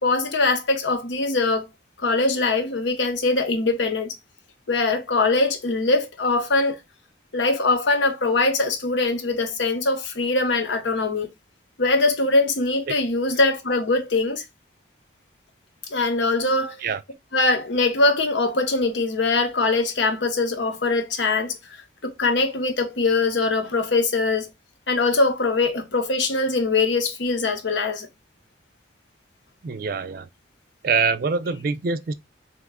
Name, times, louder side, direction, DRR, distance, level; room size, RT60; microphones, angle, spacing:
voice 1, 0.0-1.7 2.0-4.2 4.7-6.8 7.3-11.3 11.8-14.4 15.9-16.8 17.3-21.6 22.0-24.5 24.9-28.1, left 3 dB, 80° left, 0.9 m, -22 dB
voice 2, 29.6-30.3 30.8-32.1, right 5 dB, 50° right, 0.4 m, -24 dB
3.5 x 2.9 x 3.6 m
head